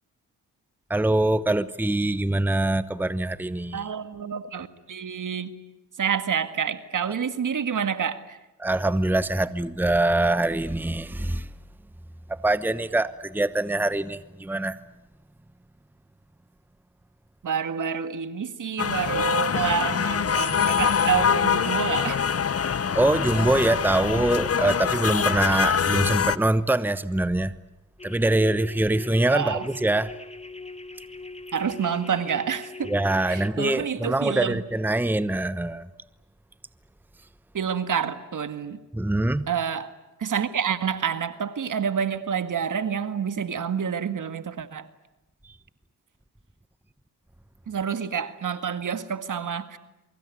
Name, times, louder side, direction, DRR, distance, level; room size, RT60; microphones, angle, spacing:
voice 1, 0.9-3.9 8.6-11.5 12.3-14.8 22.9-27.5 28.0-30.1 32.9-35.9 38.9-39.5, right 2 dB, 5° right, 1.0 m, -24 dB
voice 2, 3.7-5.5 6.0-8.4 17.4-22.2 29.3-29.7 31.5-32.9 33.3-34.6 37.5-38.8 39.5-39.9 40.2-44.9 47.7-49.8, right 7 dB, 60° right, 1.9 m, -28 dB
sound 1, 18.8-26.4, left 7 dB, 40° left, 1.1 m, -24 dB
sound 2, 28.0-33.5, left 3 dB, 20° left, 2.0 m, -41 dB
24.0 x 23.0 x 9.6 m
supercardioid pair, 55°, 36 cm